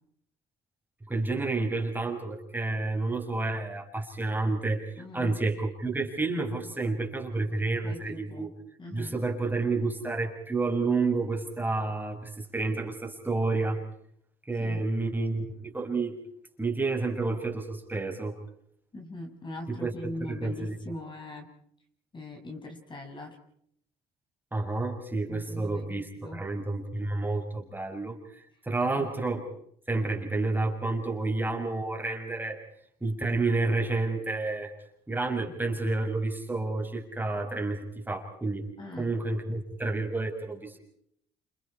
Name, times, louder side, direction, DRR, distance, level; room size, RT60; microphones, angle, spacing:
voice 1, 1.1-8.5 8.9-13.8 14.5-16.2 16.6-18.3 19.8-19.9 20.3-20.8 24.5-29.4 29.9-32.6 33.0-34.7 35.1-38.7 39.0-40.8, right 3 dB, 10° right, 2 dB, 6.1 m, -30 dB
voice 2, 5.0-5.3 7.8-9.1 14.6-14.9 18.9-21.5 22.1-23.4 25.3-26.4 28.9-29.1 38.8-39.1, left 1 dB, 30° left, 3 dB, 6.2 m, -41 dB
29.5 x 28.5 x 4.4 m, 0.68 s
cardioid pair, 110°, 17 cm